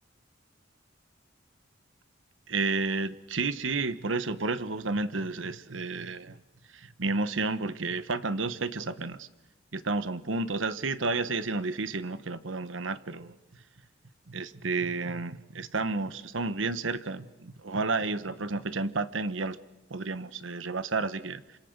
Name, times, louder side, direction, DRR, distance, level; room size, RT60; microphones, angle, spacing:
voice 1, 2.5-6.4 6.7-9.3 9.7-13.3 14.3-19.6 19.9-21.6, right 3 dB, 80° right, 14 dB, 1.1 m, -31 dB
28.0 x 26.0 x 6.7 m, 1.0 s
head